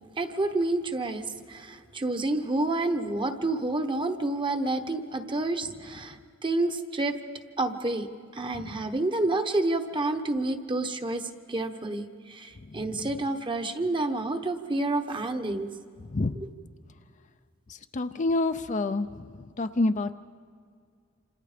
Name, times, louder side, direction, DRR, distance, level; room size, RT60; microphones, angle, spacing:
voice 1, 0.2-6.2 6.4-7.2 7.6-8.1 8.3-15.7 16.3-16.5, right 2 dB, 25° right, 7 dB, 1.1 m, -29 dB
voice 2, 12.6-13.1 16.0-16.4 17.7-20.1, left 2 dB, 40° left, 9 dB, 0.6 m, -29 dB
27.0 x 27.0 x 5.1 m, 2.2 s
head